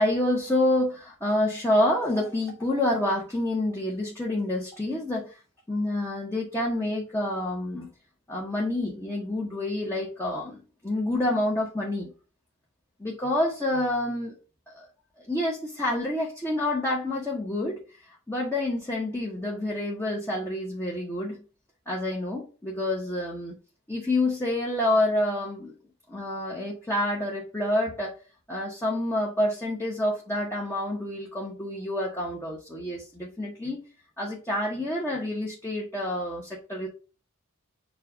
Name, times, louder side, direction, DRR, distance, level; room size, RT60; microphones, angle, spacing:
voice 1, 0.0-5.4 5.7-7.9 8.3-12.1 13.0-14.3 14.7-14.9 15.2-17.8 18.1-21.4 21.9-23.5 23.9-25.7 26.1-28.1 28.5-33.8 34.2-36.9, left 1 dB, 10° left, -4 dB, 1.1 m, -28 dB
7.4 x 2.5 x 5.0 m, 0.34 s
head